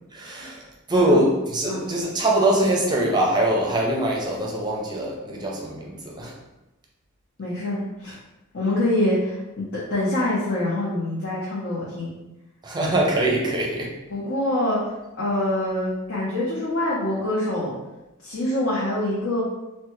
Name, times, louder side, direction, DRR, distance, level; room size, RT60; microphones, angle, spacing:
voice 1, 0.1-0.6 0.9-6.3 12.6-13.9, right 1 dB, 20° right, -2 dB, 0.5 m, -23 dB
voice 2, 7.4-8.2 8.5-12.1 12.8-12.9 14.1-14.8 15.2-17.7 18.2-19.4, left 1 dB, 60° left, -7 dB, 0.7 m, -25 dB
3.3 x 2.1 x 3.0 m, 1.0 s
head